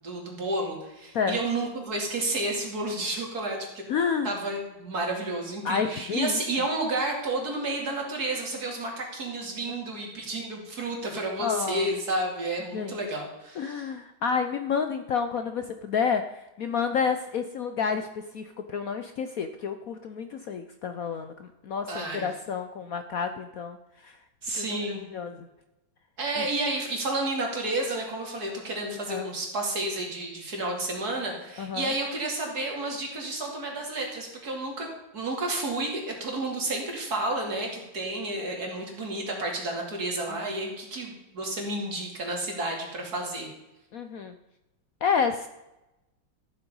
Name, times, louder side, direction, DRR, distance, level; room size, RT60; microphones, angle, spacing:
voice 1, 0.0-3.7 4.2-13.9 21.9-22.2 24.4-25.0 26.2-34.9 35.1-43.5, right 2 dB, 50° right, 0 dB, 3.1 m, -31 dB
voice 2, 3.9-4.3 5.6-6.4 11.4-11.9 12.7-13.0 13.6-16.2 16.6-18.1 18.3-23.8 24.0-24.2 24.5-24.7 25.1-25.5 26.4-26.5 28.9-29.3 31.6-31.9 40.3-40.4 43.9-44.4 45.0-45.5, left 6 dB, 65° left, 8 dB, 0.9 m, -29 dB
13.5 x 7.8 x 5.5 m, 0.96 s
omnidirectional pair, 2.2 m